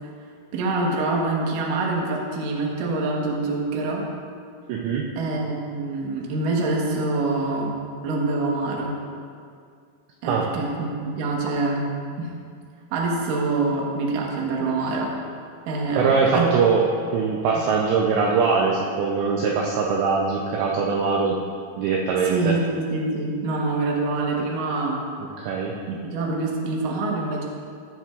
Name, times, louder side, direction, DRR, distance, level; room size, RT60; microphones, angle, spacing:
voice 1, 0.5-4.1 5.2-7.7 8.0-9.0 10.2-11.9 12.2-12.3 12.9-15.1 15.7-16.5 22.2-25.0 25.9-27.4, right 3 dB, 70° right, -2 dB, 2.1 m, -25 dB
voice 2, 4.7-5.1 10.3-10.5 16.0-16.8 17.1-21.4 21.8-22.6 25.4-25.8, right 5 dB, 85° right, -1 dB, 2.5 m, -22 dB
19.0 x 7.4 x 2.5 m, 2.3 s
omnidirectional pair, 6.0 m